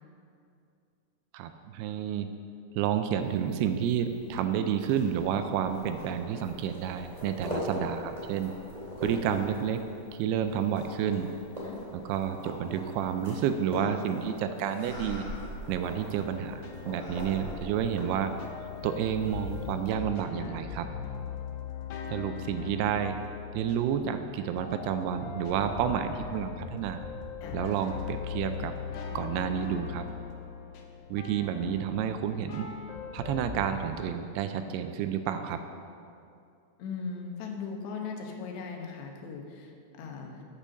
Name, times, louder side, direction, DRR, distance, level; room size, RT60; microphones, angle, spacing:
voice 1, 1.3-2.3 2.7-8.5 9.0-9.8 10.2-11.3 11.9-15.3 15.7-18.4 18.8-20.9 22.1-23.2 23.5-27.0 27.5-28.7 29.2-30.1 31.1-32.7 33.1-35.6, right 8 dB, 80° right, 8 dB, 2.5 m, -30 dB
sound 1, 3.2-19.9, equal, 15° right, 1.7 m, -43 dB
sound 2, 13.7-14.4 14.8-16.6 16.9-18.5, left 1 dB, 45° left, 2.3 m, -44 dB
sound 3, 16.1-33.7, left 7 dB, 75° left, 2.4 m, -40 dB
voice 2, 36.8-40.4, left 5 dB, 90° left, 2 dB, 3.3 m, -38 dB
8.7 x 8.3 x 6.4 m, 2.5 s
omnidirectional pair, 4.8 m